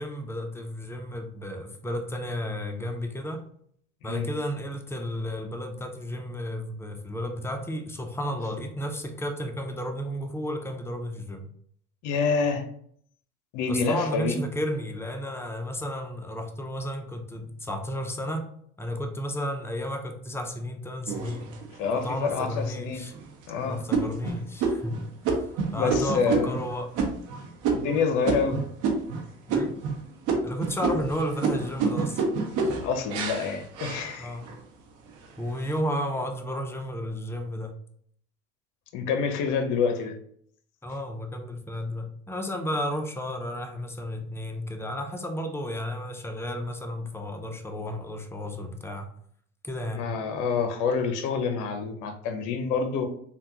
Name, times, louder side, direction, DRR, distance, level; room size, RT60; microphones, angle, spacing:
voice 1, 0.0-3.4 4.0-11.5 13.7-18.5 18.8-21.5 21.9-23.2 23.6-25.4 25.7-26.9 29.5-29.8 30.4-32.2 34.2-34.5 35.4-37.8 40.8-49.1 49.6-50.1, equal, 5° left, 5 dB, 0.5 m, -33 dB
voice 2, 12.0-12.6 13.5-14.4 21.8-23.0 23.5-23.8 25.7-26.6 27.7-28.6 32.8-34.3 38.9-40.2 50.0-53.1, left 5 dB, 60° left, 6 dB, 0.7 m, -27 dB
sound 1, 21.1-21.9 22.5-22.6 23.1-23.4 23.9-29.2 29.5-30.0 30.3-34.6 35.1-35.6, right 4 dB, 55° right, 0.8 m, -28 dB
3.5 x 2.2 x 2.8 m, 0.64 s
hypercardioid pair, 80°, 35 cm